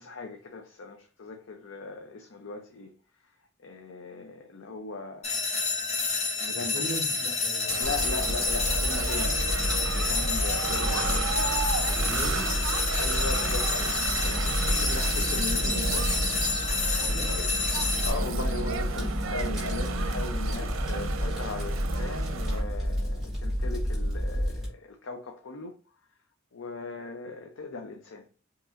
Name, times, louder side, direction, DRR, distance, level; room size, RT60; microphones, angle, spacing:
voice 1, 0.0-2.9 3.2-3.3 3.6-5.5 6.4-6.9 7.8-9.4 9.7-12.1 13.0-16.1 16.7-17.5 17.7-25.7 26.5-28.3, left 3 dB, 70° left, 0.5 m, -39 dB
sound 1, 5.2-18.1, left 4 dB, 30° left, 0.7 m, -29 dB
voice 2, 6.5-8.0 12.0-12.5 15.1-15.2 17.0-17.4 20.5-20.7, equal, 35° right, 1.1 m, -39 dB
sound 2, 7.7-22.6, right 5 dB, 80° right, 0.6 m, -34 dB
Fire, 7.8-24.7, equal, ahead, 1.9 m, -31 dB
4.9 x 2.9 x 2.5 m
head